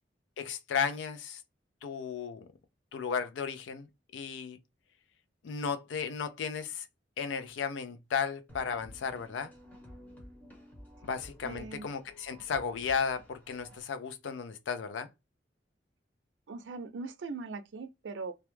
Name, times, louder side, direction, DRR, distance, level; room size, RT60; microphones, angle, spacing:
voice 1, 0.4-1.4 1.8-2.5 2.9-3.9 4.1-4.6 5.4-6.9 7.2-9.5 11.0-15.1, left 6 dB, 85° left, 0.4 m, -34 dB
sound 1, 8.5-13.8, equal, 10° left, 0.8 m, -53 dB
voice 2, 11.4-11.9 16.5-18.3, right 4 dB, 85° right, 0.5 m, -40 dB
2.2 x 2.1 x 3.0 m
head